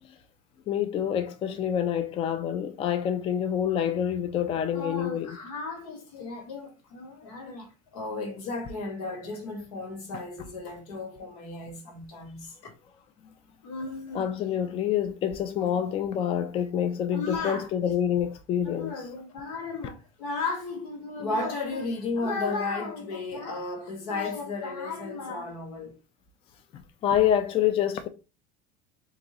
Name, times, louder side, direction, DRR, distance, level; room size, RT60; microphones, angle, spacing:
voice 1, 0.7-5.4 10.1-10.2 14.1-19.0 27.0-28.1, left 9 dB, 30° left, 0.4 m, -27 dB
voice 2, 4.7-12.7 13.6-14.2 17.1-17.7 18.6-25.9, left 3 dB, 85° left, 1.5 m, -34 dB
3.7 x 2.7 x 2.9 m
supercardioid pair, 135°, 19 cm